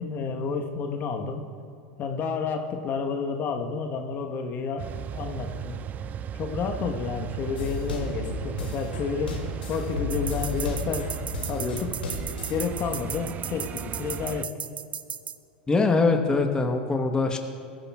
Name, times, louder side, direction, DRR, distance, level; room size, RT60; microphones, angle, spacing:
voice 1, 0.0-1.4 2.0-5.9 6.3-11.1 11.5-12.0 12.5-14.6, left 5 dB, 40° left, 4 dB, 1.2 m, -30 dB
sound 1, 4.8-14.5, right 8 dB, 30° right, 0.3 m, -36 dB
sound 2, 7.6-12.6, left 5 dB, 85° left, 2.2 m, -34 dB
sound 3, 10.1-15.4, right 7 dB, 85° right, 0.6 m, -35 dB
voice 2, 15.7-17.4, left 3 dB, 15° left, 4 dB, 1.1 m, -22 dB
22.0 x 14.0 x 2.4 m, 2.5 s
hypercardioid pair, 90°, 5 cm